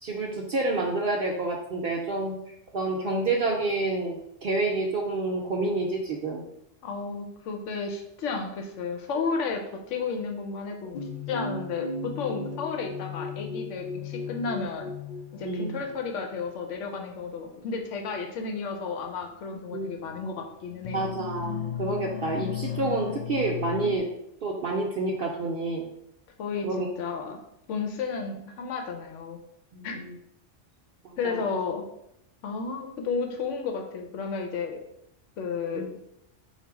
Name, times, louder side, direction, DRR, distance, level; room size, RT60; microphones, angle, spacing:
voice 1, 0.0-6.4 15.4-15.8 19.7-19.9 20.9-24.1 24.4-25.9 26.6-26.9 29.7-30.1 31.2-31.5 35.7-35.8, right 2 dB, 60° right, -1 dB, 0.7 m, -29 dB
voice 2, 6.8-14.9 15.3-21.1 26.4-27.4 27.7-29.4 29.8-30.0 31.2-31.8 32.4-34.8 35.4-36.0, left 5 dB, 85° left, 4 dB, 1.0 m, -32 dB
sound 1, 10.9-16.1 17.0-17.2 18.4-18.5 19.2-19.3 20.0-20.4 20.7-24.0, left 6 dB, 60° left, 0.5 m, -36 dB
4.0 x 2.4 x 4.6 m, 0.79 s
omnidirectional pair, 1.2 m